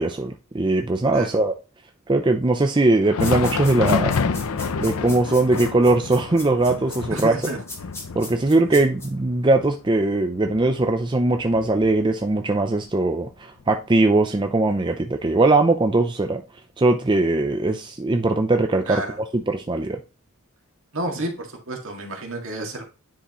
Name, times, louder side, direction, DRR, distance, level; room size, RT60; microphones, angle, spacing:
voice 1, 0.0-1.5 2.1-4.1 4.8-7.4 8.2-16.4 16.8-19.0 19.3-20.0, right 2 dB, 20° right, 0.5 m, -20 dB
Thunder, 2.9-12.4 12.7-12.9 13.6-13.8 14.7-14.8, left 5 dB, 80° left, 0.6 m, -29 dB
sound 1, 3.2-9.1, left 2 dB, 10° left, 1.9 m, -37 dB
voice 2, 7.1-7.6 8.6-8.9 18.9-19.2 20.9-22.8, right 1 dB, 60° right, 2.0 m, -30 dB
9.9 x 5.0 x 3.0 m
head